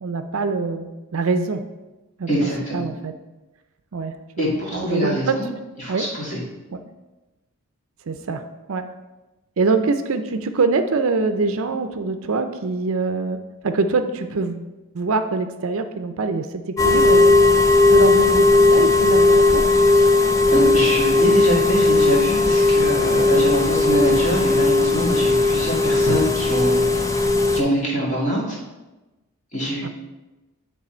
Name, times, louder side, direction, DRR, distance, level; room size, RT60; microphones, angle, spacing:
voice 1, 0.0-1.6 2.2-3.1 3.9-4.1 4.7-5.4 5.9-6.0 8.1-8.4 8.7-8.9 9.6-13.4 13.6-14.7 14.9-17.3 17.9-19.6 29.8-29.9, right 3 dB, 65° right, 8 dB, 0.5 m, -24 dB
voice 2, 2.3-2.9 4.4-5.5 5.8-6.4 20.5-27.0 27.5-28.6 29.5-29.9, equal, 30° left, -5 dB, 2.0 m, -24 dB
sound 1, 16.8-27.6, left 3 dB, 15° left, 0.4 m, -16 dB
9.8 x 3.4 x 4.3 m, 1.1 s
head